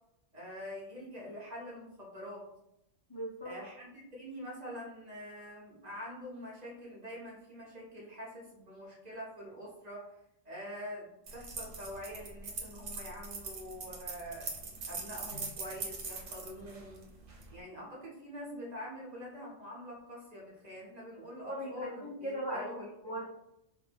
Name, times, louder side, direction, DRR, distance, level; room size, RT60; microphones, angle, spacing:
voice 1, 0.3-2.4 3.4-10.2 10.4-14.5 14.9-17.0 17.5-23.2, equal, 40° right, -4 dB, 0.7 m, -45 dB
voice 2, 3.1-3.5 21.4-22.7 23.0-23.3, equal, 45° left, -6 dB, 0.3 m, -38 dB
sound 1, 11.3-17.5, right 4 dB, 85° right, 1.0 m, -41 dB
2.2 x 2.0 x 3.2 m, 0.83 s
omnidirectional pair, 1.2 m